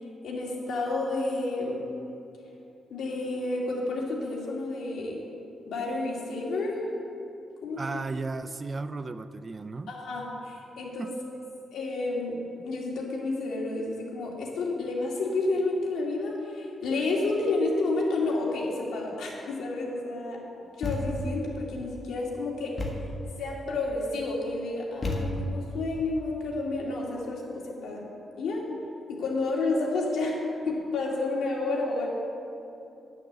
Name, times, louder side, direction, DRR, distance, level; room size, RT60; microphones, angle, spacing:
voice 1, 0.2-1.9 2.9-5.2 5.7-6.8 7.6-8.0 9.9-11.1 11.7-20.4 20.8-22.8 23.4-28.0 28.4-28.7 29.1-30.4 30.6-32.1, left 2 dB, 85° left, -3 dB, 2.4 m, -30 dB
voice 2, 7.8-9.9 11.0-11.2, right 3 dB, 25° right, 11 dB, 0.3 m, -35 dB
Thump thud, 20.8-21.4 22.8-23.2 25.0-25.7, left 1 dB, 25° left, 1.3 m, -31 dB
11.0 x 6.5 x 7.6 m, 2.9 s
wide cardioid pair, 170°, 0 cm